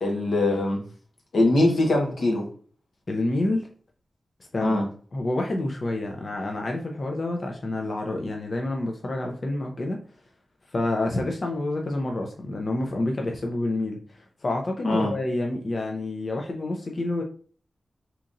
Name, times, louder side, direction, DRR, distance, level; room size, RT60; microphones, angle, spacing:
voice 1, 0.0-0.8 1.3-2.4 4.6-4.8 14.8-15.1, left 2 dB, 90° left, 1 dB, 1.0 m, -22 dB
voice 2, 3.1-3.7 4.5-4.8 5.1-10.0 10.7-17.2, left 2 dB, 40° left, 2 dB, 0.5 m, -28 dB
3.7 x 2.9 x 2.5 m, 0.43 s
wide cardioid pair, 145°, 0 cm